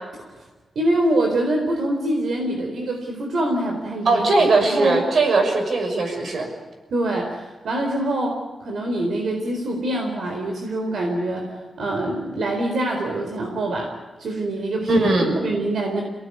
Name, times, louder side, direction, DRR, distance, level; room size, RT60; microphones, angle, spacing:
voice 1, 0.8-5.0 6.9-13.9 14.2-15.1 15.4-16.0, right 1 dB, 70° right, 2 dB, 4.4 m, -25 dB
voice 2, 4.0-6.5 14.9-15.4, right 3 dB, 55° right, 4 dB, 6.4 m, -19 dB
29.0 x 18.5 x 9.7 m, 1.3 s
wide cardioid pair, 165°, 0 cm